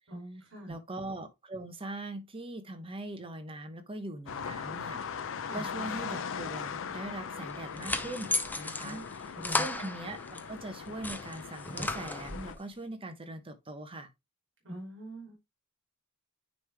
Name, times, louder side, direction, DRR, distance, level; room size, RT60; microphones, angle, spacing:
voice 1, 0.1-0.7 5.4-5.6 8.8-9.6 14.6-15.3, right 1 dB, 60° right, 3.0 m, -44 dB
voice 2, 0.7-9.0 9.5-14.1, right 2 dB, 25° right, 0.9 m, -41 dB
sound 1, 4.3-12.5, left 6 dB, 60° left, 0.6 m, -40 dB
sound 2, 7.4-10.5 10.9-12.6, left 2 dB, 10° left, 0.5 m, -35 dB
9.2 x 3.3 x 3.4 m
head